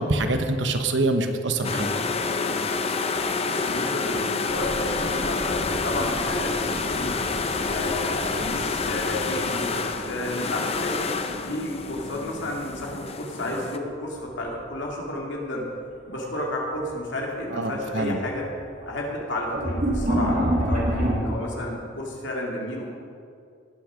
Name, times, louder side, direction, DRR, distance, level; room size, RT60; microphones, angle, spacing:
voice 1, 0.0-1.9 17.5-18.2, right 2 dB, 70° right, 6 dB, 1.0 m, -25 dB
sound 1, 1.6-13.8, left 4 dB, 35° left, 0.7 m, -28 dB
voice 2, 3.4-7.2 7.6-11.0 11.4-15.7 16.1-18.5 18.8-22.9, left 1 dB, 80° left, -2 dB, 2.5 m, -32 dB
sound 2, 4.5-11.3 11.6-12.5 14.2-14.5 15.0-15.1 16.1-16.2 16.6-17.0 17.4-21.1, right 1 dB, 45° right, 2.1 m, -30 dB
18.5 x 6.5 x 5.0 m, 2.4 s
head